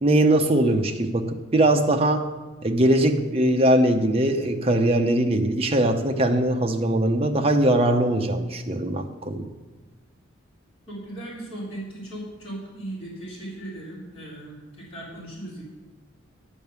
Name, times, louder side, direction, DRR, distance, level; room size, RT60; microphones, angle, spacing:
voice 1, 0.0-2.3 2.6-9.5, right 1 dB, 30° right, 4 dB, 0.7 m, -21 dB
voice 2, 10.9-15.6, right 1 dB, 25° left, -9 dB, 3.5 m, -37 dB
10.5 x 5.3 x 8.1 m, 1.2 s
head